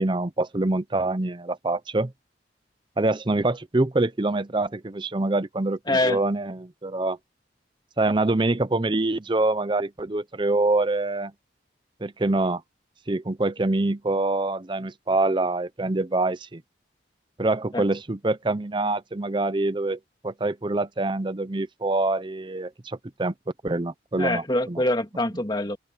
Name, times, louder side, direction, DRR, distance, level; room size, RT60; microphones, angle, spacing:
voice 1, 0.0-2.1 3.0-7.2 8.0-11.3 12.0-12.6 13.1-16.6 17.4-23.3 23.6-24.8, right 2 dB, 25° right, 0.7 m, -25 dB
voice 2, 5.9-6.2 17.7-17.8 24.2-25.8, left 1 dB, 25° left, 2.8 m, -24 dB
head